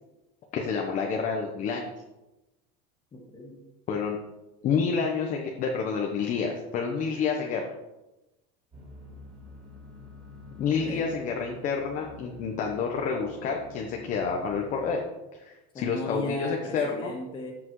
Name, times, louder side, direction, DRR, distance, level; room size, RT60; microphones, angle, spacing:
voice 1, 0.5-1.9 3.9-4.2 4.6-7.6 10.6-15.0 15.4-17.1, left 5 dB, 40° left, 1 dB, 1.0 m, -29 dB
voice 2, 3.1-3.6 10.7-11.1 15.7-17.5, left 2 dB, 25° left, 0 dB, 2.2 m, -36 dB
sound 1, 8.7-15.0, left 2 dB, 25° right, 3.3 m, -47 dB
13.5 x 5.9 x 3.2 m, 1.0 s
supercardioid pair, 140°, 20 cm